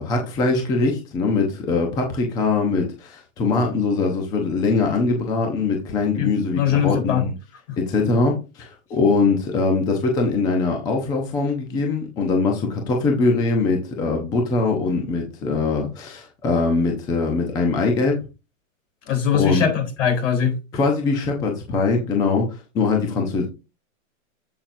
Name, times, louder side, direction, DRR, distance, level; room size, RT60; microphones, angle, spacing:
voice 1, 0.0-7.3 7.8-18.2 19.3-19.6 20.7-23.5, left 3 dB, 10° left, 0.7 m, -22 dB
voice 2, 6.2-7.2 19.1-20.5, left 8 dB, 65° left, 4.1 m, -21 dB
8.5 x 7.7 x 2.7 m
hypercardioid pair, 165°, 40 cm